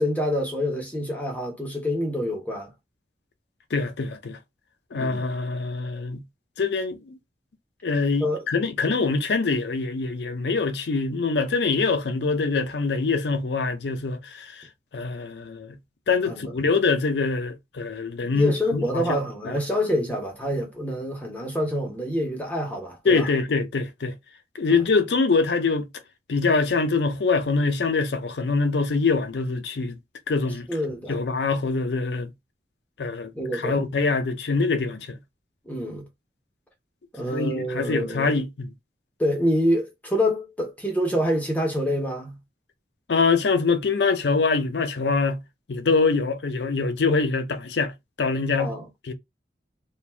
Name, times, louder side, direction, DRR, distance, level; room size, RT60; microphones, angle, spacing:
voice 1, 0.0-2.7 4.9-5.2 8.2-8.4 16.2-16.5 18.1-23.3 30.7-31.2 33.3-33.8 35.7-36.1 37.1-38.4 39.2-42.4 48.6-48.8, equal, 10° left, 0.5 m, -26 dB
voice 2, 3.7-4.4 4.9-6.2 6.6-7.2 7.8-14.6 14.9-15.8 16.1-19.6 23.1-24.2 24.5-25.9 26.3-30.0 30.3-30.7 31.1-32.3 33.0-35.2 37.3-38.7 43.1-45.4 45.7-47.9 48.2-48.8 49.1-49.2, left 4 dB, 75° left, 0.5 m, -24 dB
2.5 x 2.1 x 3.2 m
head